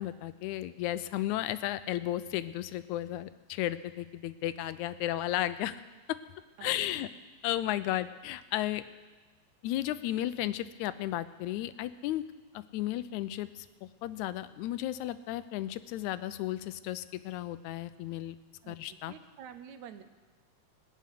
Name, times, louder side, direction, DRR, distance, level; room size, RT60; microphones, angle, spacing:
voice 1, 0.0-5.8 6.1-6.2 6.6-7.1 7.4-8.8 9.6-12.2 12.5-18.4 18.7-19.1, left 14 dB, 85° left, 14 dB, 2.0 m, -34 dB
voice 2, 6.6-7.1 18.6-20.0, right 8 dB, 75° right, 9 dB, 2.2 m, -49 dB
19.5 x 6.8 x 9.2 m, 1.3 s
omnidirectional pair, 3.3 m